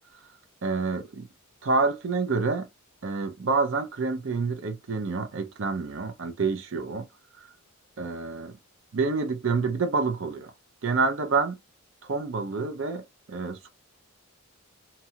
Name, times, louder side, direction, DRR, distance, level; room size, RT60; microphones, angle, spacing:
voice 1, 0.6-1.3 1.6-2.7 3.0-7.1 8.0-8.5 8.9-10.5 10.8-11.6 12.0-13.7, right 4 dB, 55° right, 0.5 m, -28 dB
2.8 x 2.2 x 2.8 m
head